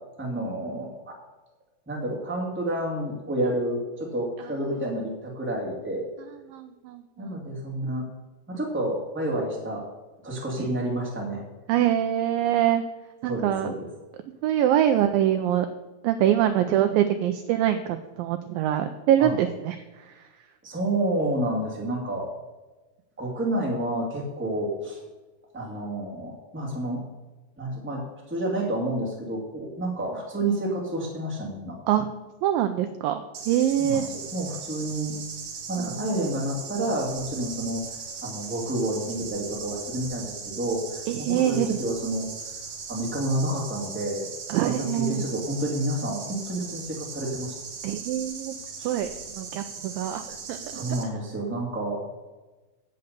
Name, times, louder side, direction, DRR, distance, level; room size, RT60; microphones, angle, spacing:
voice 1, 0.2-1.2 1.9-6.1 7.2-8.1 8.5-9.9 10.2-11.4 13.2-13.9 19.2-19.3 20.6-22.3 23.2-25.0 25.5-27.0 27.6-31.8 33.8-34.0 34.3-35.2 35.7-37.8 38.2-42.3 42.9-44.3 44.6-47.5 48.8-48.9 50.7-52.0, right 1 dB, 5° right, -2 dB, 1.8 m, -29 dB
voice 2, 6.2-7.4 10.6-10.7 11.7-12.8 13.2-13.7 14.4-15.7 16.0-20.3 31.9-32.1 32.4-34.1 35.7-36.1 41.1-41.8 44.5-45.3 47.8-48.6 48.8-50.8, right 11 dB, 80° right, 8 dB, 2.2 m, -25 dB
sound 1, 33.3-51.0, right 5 dB, 60° right, 2.6 m, -39 dB
16.0 x 5.4 x 6.8 m, 1.2 s
omnidirectional pair, 4.4 m